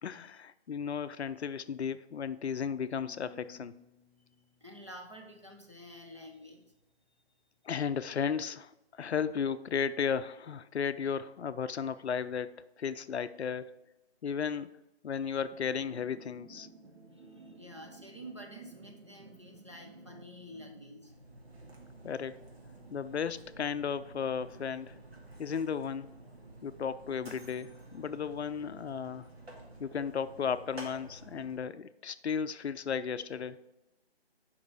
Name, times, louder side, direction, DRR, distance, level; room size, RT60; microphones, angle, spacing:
voice 1, 0.0-3.7 7.7-13.7 14.2-14.7 15.0-16.7 22.0-22.4 22.9-25.0 25.4-26.1 26.6-29.3 29.8-33.6, left 7 dB, 80° left, 14 dB, 0.5 m, -34 dB
sound 1, 3.0-6.0, left 4 dB, ahead, 0.3 m, -60 dB
voice 2, 4.6-6.7 15.1-15.4 17.0-21.5, equal, 25° right, 1 dB, 0.7 m, -49 dB
sound 2, 15.5-20.8, right 3 dB, 85° right, 1.5 m, -54 dB
Mechanisms, 21.0-31.7, right 2 dB, 70° right, 2.0 m, -51 dB
5.3 x 5.2 x 4.7 m, 0.95 s
figure-of-eight pair, 170°, 33 cm